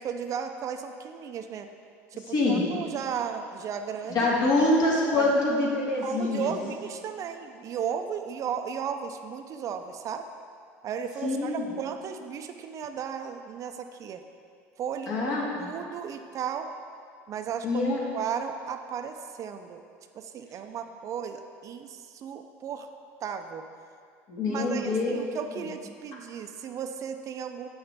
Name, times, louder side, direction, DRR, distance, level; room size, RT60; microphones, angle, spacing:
voice 1, 0.0-1.7 2.1-4.3 5.1-5.3 6.0-10.3 10.8-14.2 14.8-15.2 15.6-16.7 17.3-17.8 18.1-19.8 20.2-22.9 23.2-23.6 24.5-27.7, right 7 dB, 45° right, 7 dB, 0.5 m, -35 dB
voice 2, 2.3-2.7 4.1-6.5 11.2-11.7 15.1-15.7 17.6-18.0 24.3-25.1 25.6-25.7, left 2 dB, 60° left, -4 dB, 1.8 m, -25 dB
7.7 x 5.7 x 3.5 m, 2.3 s
supercardioid pair, 90°, 8 cm